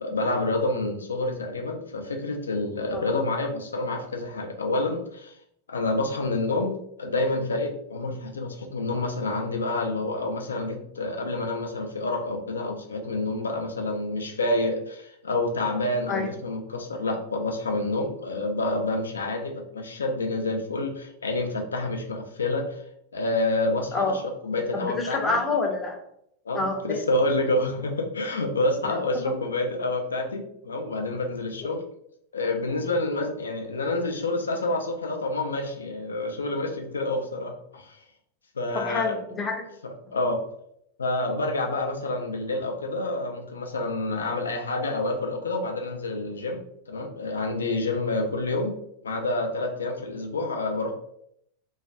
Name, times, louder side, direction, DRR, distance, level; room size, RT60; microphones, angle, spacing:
voice 1, 0.0-5.4 5.7-22.8 23.1-25.4 26.5-31.8 32.3-38.0 38.6-39.2 39.8-40.4 41.0-48.7 49.0-50.9, left 2 dB, 70° left, 3 dB, 0.4 m, -28 dB
voice 2, 24.7-26.0 26.5-27.0 29.3-29.4 31.6-31.7 38.7-39.6, left 3 dB, 20° left, 2 dB, 0.5 m, -27 dB
2.3 x 2.2 x 2.5 m, 0.73 s
figure-of-eight pair, 90°, 0 cm